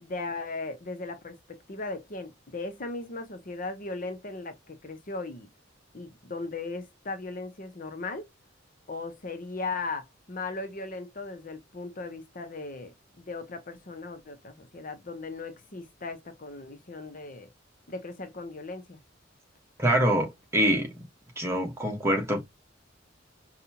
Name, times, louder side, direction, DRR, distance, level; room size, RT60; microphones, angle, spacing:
voice 1, 0.0-5.5 5.9-8.3 8.9-17.5 17.9-19.0, left 3 dB, 45° left, 0.8 m, -37 dB
voice 2, 19.8-20.9 21.4-22.4, right 1 dB, 15° right, 1.3 m, -25 dB
5.3 x 2.3 x 2.8 m
head